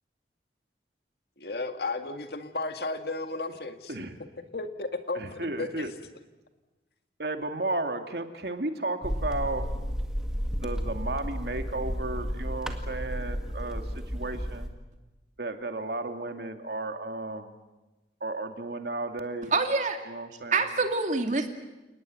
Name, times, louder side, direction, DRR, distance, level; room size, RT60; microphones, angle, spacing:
voice 1, 1.4-3.9 4.5-5.9, left 3 dB, 65° left, 7 dB, 2.1 m, -34 dB
voice 2, 5.1-5.9 7.2-9.7 10.6-14.7 15.4-17.5 18.2-19.5 20.1-20.7, right 2 dB, 65° right, 6 dB, 2.3 m, -33 dB
sound 1, 9.0-14.7, equal, 5° right, 1.9 m, -32 dB
voice 3, 19.5-20.0 20.5-21.5, right 3 dB, 45° right, 5 dB, 2.6 m, -25 dB
29.5 x 19.0 x 9.4 m, 1.1 s
head